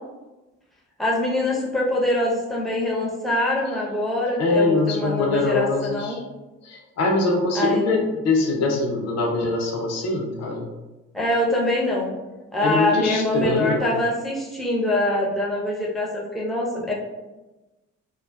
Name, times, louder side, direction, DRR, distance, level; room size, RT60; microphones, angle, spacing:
voice 1, 1.0-6.2 7.5-7.8 11.1-12.1 12.5-16.9, left 1 dB, ahead, -4 dB, 0.7 m, -24 dB
voice 2, 4.4-6.2 6.6-10.7 12.6-13.9, left 3 dB, 50° left, 1 dB, 0.6 m, -23 dB
2.4 x 2.3 x 2.2 m, 1.1 s
hypercardioid pair, 40°, 35 cm